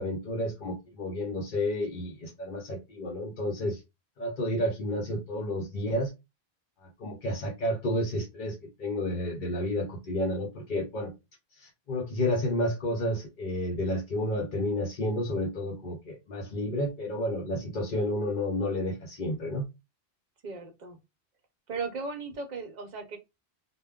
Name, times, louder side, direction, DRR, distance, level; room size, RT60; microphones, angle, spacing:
voice 1, 0.0-3.8 4.2-6.1 6.8-11.1 11.6-19.7, left 1 dB, 55° left, 0.7 m, -31 dB
voice 2, 20.4-21.0 21.7-23.2, right 4 dB, 50° right, 0.7 m, -36 dB
2.1 x 2.1 x 3.5 m
omnidirectional pair, 1.1 m